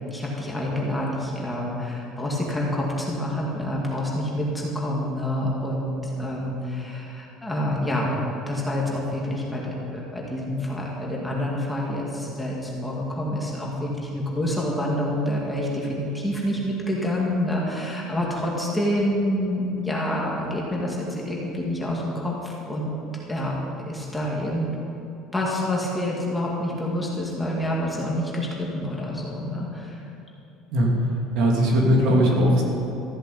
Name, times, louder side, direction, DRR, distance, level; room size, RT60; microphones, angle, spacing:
voice 1, 0.1-22.9 23.3-23.6 23.9-24.7 25.3-30.0, left 1 dB, 5° left, -4 dB, 2.1 m, -27 dB
voice 2, 31.3-32.6, equal, 55° right, -1 dB, 2.9 m, -19 dB
14.5 x 7.9 x 8.7 m, 2.9 s
cardioid pair, 160°, 0 cm